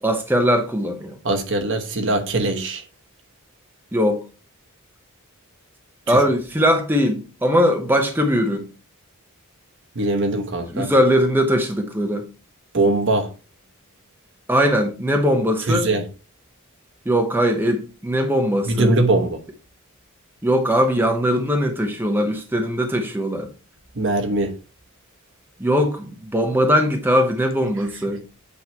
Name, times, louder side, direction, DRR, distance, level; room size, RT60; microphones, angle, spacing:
voice 1, 0.0-1.2 3.9-4.2 6.1-8.7 10.7-12.3 14.5-15.9 17.0-18.9 20.4-23.5 25.6-28.2, equal, 10° right, 0.8 m, -20 dB
voice 2, 1.2-2.8 6.1-6.2 9.9-10.9 12.7-13.3 15.7-16.0 18.6-19.4 24.0-24.5, right 2 dB, 55° right, 1.0 m, -21 dB
8.3 x 3.1 x 4.3 m
head